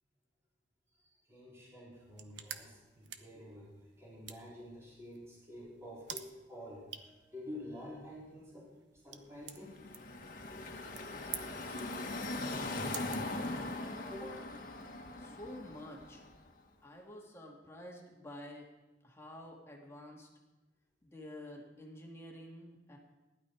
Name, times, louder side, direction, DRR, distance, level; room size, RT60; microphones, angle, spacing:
voice 1, 1.0-9.9 14.1-14.4, left 1 dB, 15° right, -6 dB, 4.4 m, -49 dB
sound 1, 1.9-14.0, right 9 dB, 80° right, 1.0 m, -51 dB
Car passing by / Traffic noise roadway noise, 9.5-16.5, left 2 dB, 50° left, 1.7 m, -40 dB
voice 2, 15.2-16.3 16.8-18.7 19.0-20.3 21.0-23.0, left 1 dB, 15° left, -1 dB, 2.3 m, -49 dB
19.0 x 12.0 x 4.8 m, 1.1 s
head